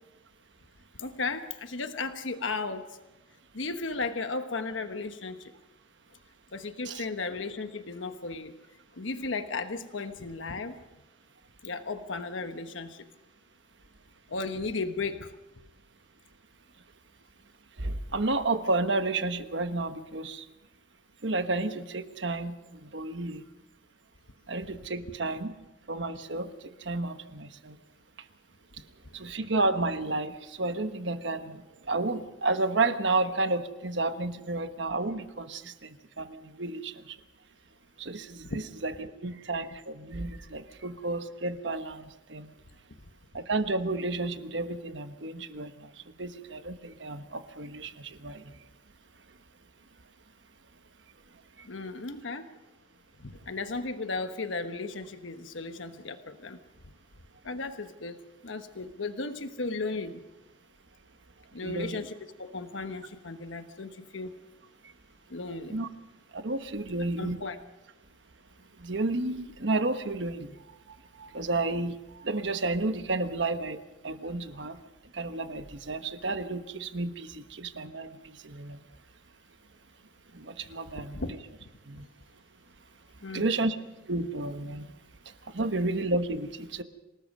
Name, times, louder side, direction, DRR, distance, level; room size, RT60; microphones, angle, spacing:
voice 1, 1.0-2.8 3.5-5.5 6.5-8.5 8.9-10.7 11.6-13.0 14.3-15.3 38.5-38.6 51.6-52.5 53.2-56.6 57.4-60.2 61.5-64.3 65.3-65.8 67.2-67.6 81.1-81.3 81.6-81.7 83.2-83.5, left 3 dB, 90° left, 8 dB, 1.2 m, -35 dB
voice 2, 17.8-20.5 21.2-23.4 24.5-25.5 25.9-27.8 28.8-28.9 29.1-37.2 38.0-42.5 43.3-48.6 51.6-51.7 61.6-62.1 64.8-64.9 65.7-65.9 66.3-67.4 68.8-74.8 75.1-78.8 80.3-81.4 81.9-82.1 83.3-83.8 84.1-84.9 85.5-86.8, right 2 dB, 70° right, 9 dB, 1.3 m, -32 dB
27.0 x 18.5 x 5.4 m, 1.0 s
head